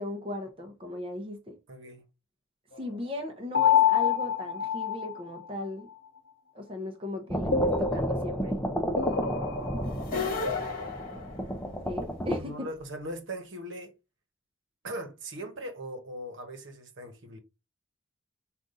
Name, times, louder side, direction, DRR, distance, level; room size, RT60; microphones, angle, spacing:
voice 1, 0.0-1.6 2.8-5.9 6.5-8.6 11.8-12.7, left 1 dB, 25° right, 0.7 m, -37 dB
voice 2, 1.7-2.0 12.4-13.9 14.8-17.4, right 1 dB, 70° right, 1.1 m, -39 dB
sound 1, 3.5-5.4 7.5-10.3, left 7 dB, 70° left, 0.6 m, -27 dB
sound 2, 7.3-12.4, equal, 10° left, 0.5 m, -32 dB
sound 3, 10.0-12.0, left 4 dB, 45° left, 1.1 m, -33 dB
5.2 x 2.5 x 3.8 m
head